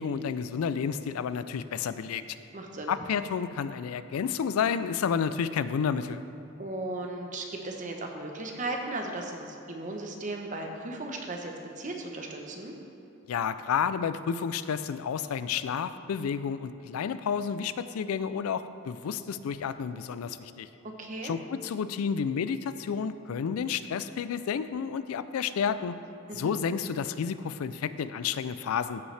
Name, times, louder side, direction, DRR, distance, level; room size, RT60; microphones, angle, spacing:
voice 1, 0.0-2.2 2.9-6.2 13.3-20.7 21.2-26.0 26.3-29.0, left 7 dB, 85° left, 13 dB, 0.4 m, -30 dB
voice 2, 2.5-2.9 6.6-12.7 20.8-21.3 26.3-26.6, right 2 dB, 35° right, 2 dB, 0.8 m, -36 dB
14.5 x 5.5 x 3.3 m, 2.9 s
head